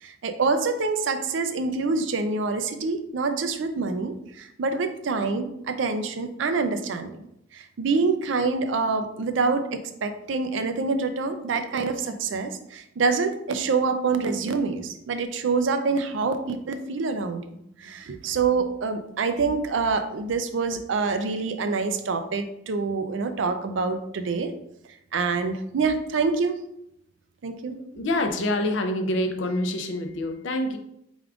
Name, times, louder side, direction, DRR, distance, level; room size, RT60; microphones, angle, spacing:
voice 1, 0.0-7.3 7.5-17.4 17.8-24.5 25.1-26.6 27.4-27.8, right 4 dB, 70° right, 8 dB, 0.4 m, -26 dB
voice 2, 27.9-30.8, left 1 dB, 65° left, 6 dB, 0.5 m, -26 dB
4.6 x 3.5 x 2.4 m, 0.78 s
head